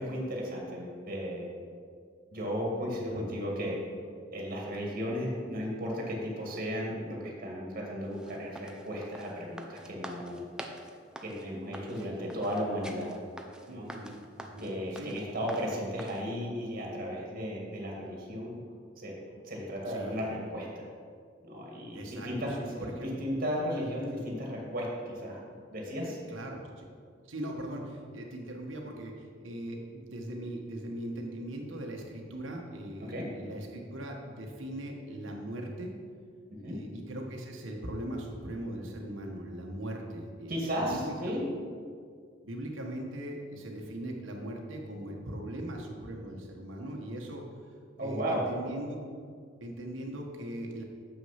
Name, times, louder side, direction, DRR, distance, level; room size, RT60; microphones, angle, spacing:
voice 1, 0.0-1.5 2.3-3.8 4.3-10.4 11.2-13.1 13.7-13.9 14.6-18.6 19.0-19.1 19.4-20.8 21.4-25.4 25.7-26.2 33.1-33.3 36.5-36.7 40.5-41.4 48.0-48.4, equal, 50° right, -2 dB, 1.8 m, -35 dB
voice 2, 3.0-3.3 12.0-12.3 13.7-15.2 19.9-20.2 21.9-23.1 26.3-26.9 27.3-35.9 36.6-41.4 42.4-47.4 48.0-49.0 49.6-50.8, right 1 dB, 90° right, 1 dB, 1.3 m, -40 dB
sound 1, 8.1-16.2, right 1 dB, 5° right, 0.5 m, -46 dB
7.0 x 6.2 x 5.8 m, 2.1 s
head